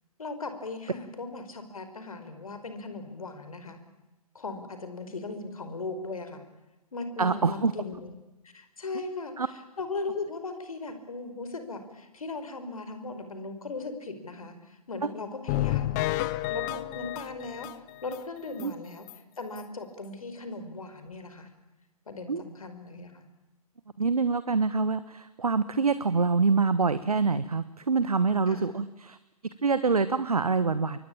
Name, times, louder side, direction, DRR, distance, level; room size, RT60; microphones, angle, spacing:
voice 1, 0.2-3.8 4.3-6.4 6.9-8.1 8.5-16.1 16.5-19.1 19.4-21.5 22.1-23.3 28.5-28.7, left 3 dB, 65° left, 9 dB, 5.2 m, -38 dB
voice 2, 7.2-7.7 9.4-9.5 18.6-18.7 22.3-22.4 24.0-29.2 29.6-31.0, right 4 dB, 70° right, 14 dB, 1.3 m, -25 dB
sound 1, 15.5-18.2 18.6-18.7 19.1-19.2 19.6-19.7, left 16 dB, 30° left, 1.1 m, -30 dB
27.5 x 23.0 x 8.7 m, 1.0 s
figure-of-eight pair, 120°, 19 cm